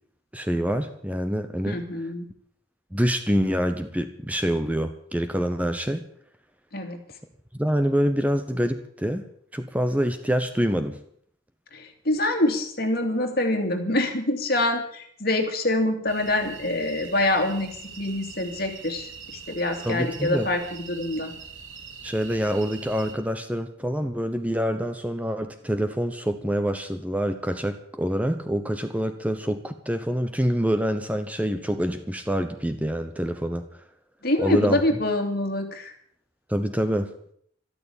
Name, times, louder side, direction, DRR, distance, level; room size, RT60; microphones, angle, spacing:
voice 1, 0.3-1.8 2.9-6.0 7.5-11.0 19.8-20.5 22.0-33.6 34.4-34.8 36.5-37.1, equal, 5° right, 9 dB, 0.8 m, -26 dB
voice 2, 1.7-2.3 6.7-7.0 11.7-21.3 34.2-35.9, left 1 dB, 50° left, 5 dB, 2.7 m, -25 dB
sound 1, 16.1-23.1, right 5 dB, 75° right, 2.4 m, -43 dB
13.0 x 13.0 x 8.6 m, 0.66 s
head